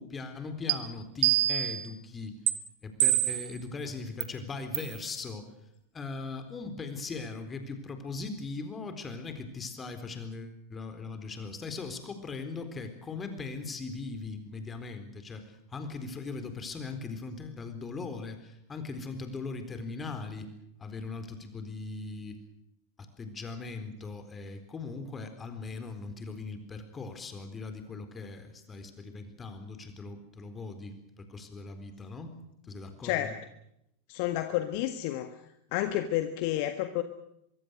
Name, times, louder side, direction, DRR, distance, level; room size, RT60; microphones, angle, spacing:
voice 1, 0.0-2.3 2.8-5.5 5.9-20.5 20.8-22.4 23.2-32.4 32.6-33.3, left 4 dB, 20° left, 8 dB, 4.1 m, -39 dB
sound 1, 0.7-0.8 1.2-1.8 2.5-2.6 3.0-3.5 4.2-4.3 4.7-5.0, right 17 dB, 50° right, 1.9 m, -25 dB
voice 2, 34.1-35.3 35.7-37.0, left 13 dB, 45° left, 9 dB, 1.6 m, -30 dB
24.0 x 24.0 x 6.5 m, 0.78 s
figure-of-eight pair, 90°, 0 cm